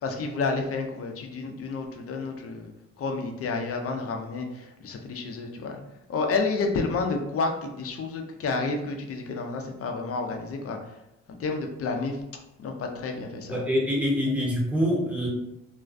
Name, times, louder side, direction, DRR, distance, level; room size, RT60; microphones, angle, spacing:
voice 1, 0.0-2.7 3.0-5.8 6.1-10.8 11.4-12.2 12.6-13.6, left 3 dB, 50° left, 3 dB, 0.5 m, -30 dB
voice 2, 13.5-15.3, equal, 5° right, -3 dB, 0.9 m, -25 dB
2.5 x 2.1 x 2.4 m, 0.86 s
supercardioid pair, 65°, 31 cm